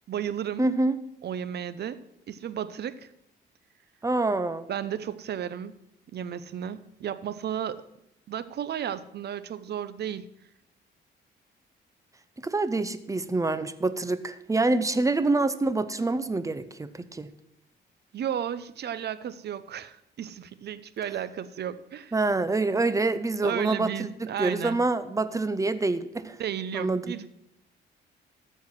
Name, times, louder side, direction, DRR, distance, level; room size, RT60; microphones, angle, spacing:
voice 1, 0.1-0.7 1.2-3.1 4.7-5.8 6.1-7.8 8.3-10.3 18.1-22.1 23.4-24.8 26.4-27.3, right 9 dB, 55° right, 14 dB, 0.7 m, -33 dB
voice 2, 0.6-0.9 4.0-4.7 12.4-17.3 22.1-26.4 26.7-27.3, right 2 dB, 15° right, 13 dB, 0.8 m, -26 dB
13.5 x 4.7 x 7.6 m, 0.81 s
cardioid pair, 90°, 20 cm